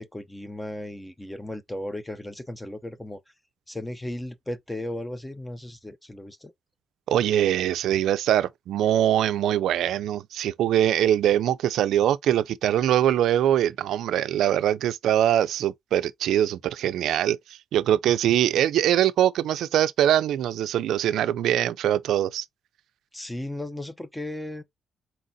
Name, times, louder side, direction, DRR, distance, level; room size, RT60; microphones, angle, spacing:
voice 1, 0.0-3.2 3.7-6.5 23.1-24.6, left 1 dB, 10° left, 0.8 m, -35 dB
voice 2, 7.1-22.5, right 11 dB, 80° right, 0.4 m, -23 dB
4.5 x 3.8 x 2.7 m
cardioid pair, 90°, 0 cm